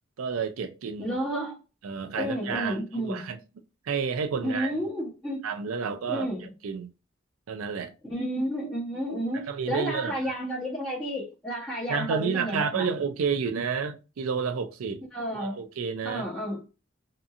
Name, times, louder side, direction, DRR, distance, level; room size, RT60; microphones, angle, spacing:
voice 1, 0.2-1.2 1.8-3.4 3.9-4.8 5.4-6.9 7.5-7.9 9.3-10.3 11.9-15.0 15.3-16.3, right 6 dB, 90° right, 0.4 m, -30 dB
voice 2, 1.0-1.5 2.2-3.2 4.4-5.4 6.1-6.4 8.1-12.9 15.1-15.6 16.0-16.6, equal, 5° left, 0.9 m, -31 dB
2.8 x 2.6 x 2.4 m
head